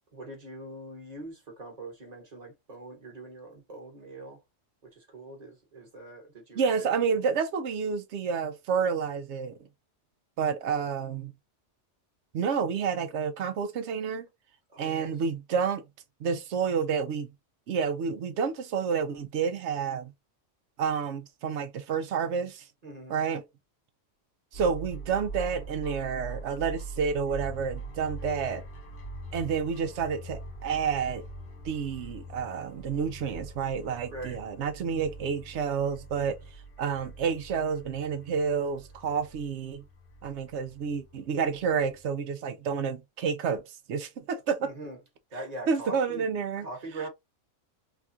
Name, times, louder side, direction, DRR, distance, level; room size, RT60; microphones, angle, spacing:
voice 1, 0.1-4.4 4.8-6.9 14.7-15.2 22.8-23.1 34.1-34.4 44.6-45.0 45.3-46.2 46.6-47.1, right 2 dB, 35° right, 1.2 m, -42 dB
voice 2, 6.5-9.5 10.4-11.3 12.3-14.3 14.8-15.8 16.2-17.3 17.7-20.1 20.8-22.7 23.1-23.4 24.5-28.6 29.3-31.3 31.6-36.4 36.8-39.8 40.2-44.7 45.7-46.7, right 6 dB, 70° right, 0.9 m, -29 dB
sound 1, 24.5-42.1, right 2 dB, 50° left, 1.1 m, -43 dB
3.5 x 2.3 x 2.6 m
omnidirectional pair, 1.3 m